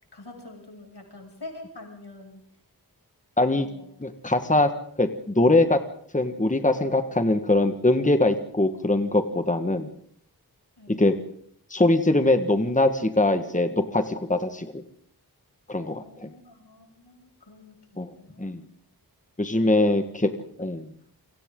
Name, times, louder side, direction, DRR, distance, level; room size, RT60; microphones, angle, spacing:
voice 1, 0.1-2.4 3.6-3.9 10.8-11.1 15.7-18.6 19.7-20.0, left 2 dB, 90° left, 1 dB, 7.1 m, -46 dB
voice 2, 3.4-3.7 4.0-4.7 5.0-5.8 6.1-9.9 10.9-11.2 11.7-14.8 15.7-16.3 18.0-18.1 18.4-18.6 19.4-20.3 20.6-20.9, left 2 dB, 20° left, 8 dB, 1.6 m, -22 dB
28.5 x 24.5 x 3.8 m, 0.64 s
wide cardioid pair, 55°, 39 cm